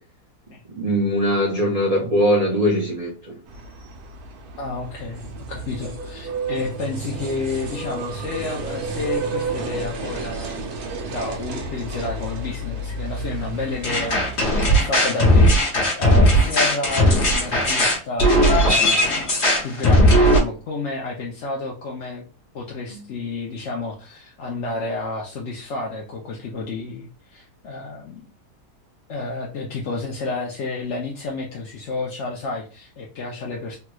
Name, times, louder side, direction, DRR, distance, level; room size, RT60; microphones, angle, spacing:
voice 1, 0.8-3.4, equal, 55° right, 0.4 m, -21 dB
sound 1, 3.5-14.7, right 3 dB, 70° right, 1.1 m, -31 dB
voice 2, 4.6-10.7 11.1-22.2 22.5-28.2 29.1-33.8, left 3 dB, 60° left, 0.7 m, -30 dB
sound 2, 13.8-20.4, equal, 45° left, 1.3 m, -17 dB
3.4 x 3.0 x 2.2 m
omnidirectional pair, 1.7 m